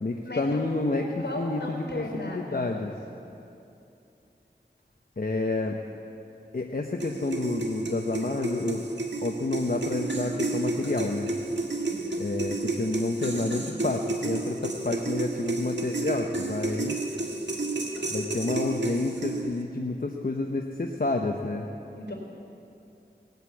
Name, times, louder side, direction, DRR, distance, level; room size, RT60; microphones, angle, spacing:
voice 1, 0.0-1.0 1.4-2.9 5.2-5.8 6.5-8.8 9.2-11.3 12.2-17.0 18.1-21.7, left 2 dB, 50° left, 2 dB, 0.9 m, -29 dB
voice 2, 0.9-2.7 11.8-12.1 22.0-22.1, left 1 dB, 75° left, -1 dB, 4.2 m, -36 dB
sound 1, 7.0-19.6, right 2 dB, 85° right, 1.5 m, -31 dB
19.5 x 8.1 x 8.4 m, 2.8 s
wide cardioid pair, 50°, 18 cm